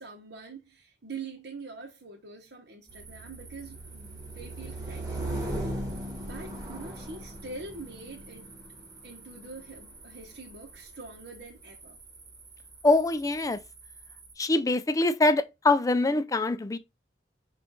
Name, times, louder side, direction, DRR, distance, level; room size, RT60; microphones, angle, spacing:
voice 1, 0.0-5.2 6.2-8.5 9.0-12.0, right 3 dB, 75° right, 1.0 m, -44 dB
sound 1, 2.9-14.3, right 1 dB, 20° right, 1.6 m, -39 dB
voice 2, 12.8-13.6 14.4-16.8, left 2 dB, 20° left, 0.4 m, -24 dB
5.8 x 2.4 x 3.7 m
head